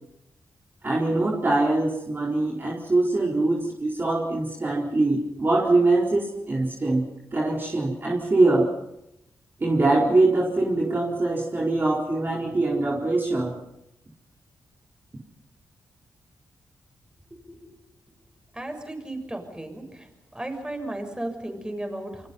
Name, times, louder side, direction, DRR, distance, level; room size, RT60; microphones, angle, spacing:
voice 1, 0.8-7.0 7.3-8.7 9.6-13.5, right 2 dB, 35° right, -3 dB, 4.4 m, -23 dB
voice 2, 18.5-20.1 20.3-22.3, right 1 dB, 15° right, 5 dB, 6.8 m, -34 dB
28.5 x 24.5 x 5.6 m, 0.84 s
cardioid pair, 75°, 6 cm